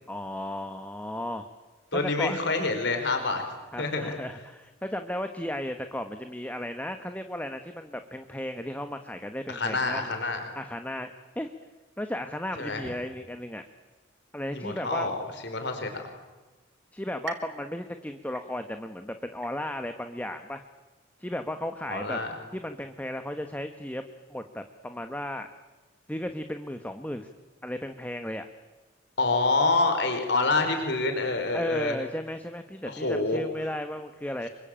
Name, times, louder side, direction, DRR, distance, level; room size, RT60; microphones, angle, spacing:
voice 1, 0.1-1.5 1.9-2.4 3.7-10.1 10.5-11.5 12.0-13.6 14.3-15.1 16.9-20.6 21.2-22.2 22.5-24.0 24.3-25.5 26.1-27.3 27.6-28.5 31.5-34.5, left 1 dB, 10° left, 7 dB, 1.3 m, -35 dB
voice 2, 1.9-3.4 3.8-4.2 9.5-10.4 12.6-12.8 14.5-15.2 15.4-16.1 21.9-22.3 29.2-32.0 32.8-33.4, left 3 dB, 60° left, 5 dB, 4.6 m, -27 dB
sound 1, 17.3-19.0 19.4-20.0 20.5-20.6 21.6-21.7, right 4 dB, 70° right, 4.3 m, -44 dB
28.0 x 24.0 x 9.0 m, 1.2 s
head